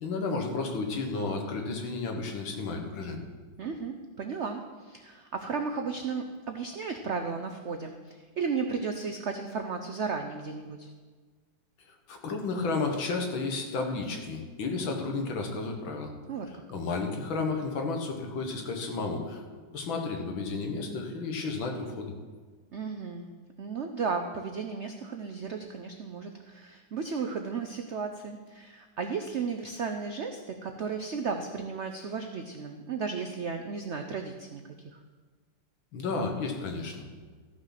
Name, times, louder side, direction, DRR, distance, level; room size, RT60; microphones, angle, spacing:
voice 1, 0.0-3.2 12.1-16.1 16.7-19.4 19.7-22.1 35.9-37.1, left 3 dB, 80° left, 3 dB, 2.2 m, -32 dB
voice 2, 3.6-10.9 16.3-16.5 22.7-23.3 23.6-35.0, right 5 dB, 85° right, 5 dB, 0.6 m, -34 dB
14.0 x 6.2 x 5.8 m, 1.4 s
omnidirectional pair, 2.1 m